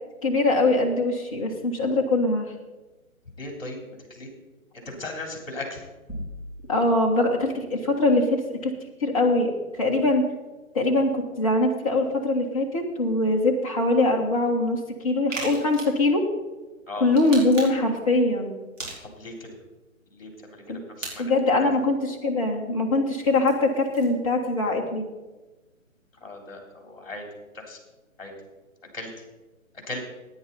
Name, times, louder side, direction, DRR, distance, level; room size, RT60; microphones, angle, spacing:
voice 1, 0.2-2.5 6.7-8.7 9.0-10.2 10.7-16.2 17.0-18.5 20.7-20.8 21.2-25.0, left 2 dB, 25° left, 0 dB, 1.5 m, -22 dB
voice 2, 3.4-4.3 4.7-5.8 16.9-17.1 19.0-19.6 20.1-21.7 26.2-27.3 27.5-27.8 28.2-28.3 28.9-29.2 29.9-30.0, left 2 dB, 45° left, 2 dB, 3.7 m, -37 dB
sound 1, 6.1-7.1, equal, ahead, 1.3 m, -37 dB
sound 2, 15.3-16.0 17.1-17.9 18.8-19.4 21.0-21.1 23.1-24.2, right 2 dB, 65° right, 4.7 m, -37 dB
16.0 x 9.6 x 4.2 m, 1.2 s
figure-of-eight pair, 145°, 41 cm